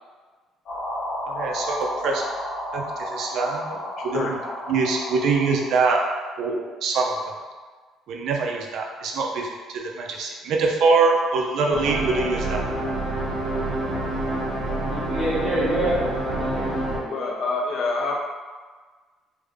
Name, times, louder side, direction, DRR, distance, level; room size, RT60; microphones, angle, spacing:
sound 1, 0.6-6.1, equal, 75° left, 1.3 m, -32 dB
voice 1, 1.3-2.2 2.7-3.7 4.0-4.4 4.7-6.0 6.4-7.4 8.1-12.6, right 4 dB, 60° right, 1 dB, 0.5 m, -24 dB
sound 2, 11.7-17.0, right 1 dB, 80° right, 1.2 m, -27 dB
voice 2, 14.8-17.4, right 1 dB, 20° right, -9 dB, 0.7 m, -28 dB
voice 3, 17.1-18.2, left 3 dB, 50° left, 0 dB, 0.5 m, -26 dB
3.4 x 2.1 x 3.4 m, 1.4 s
cardioid pair, 155°, 0 cm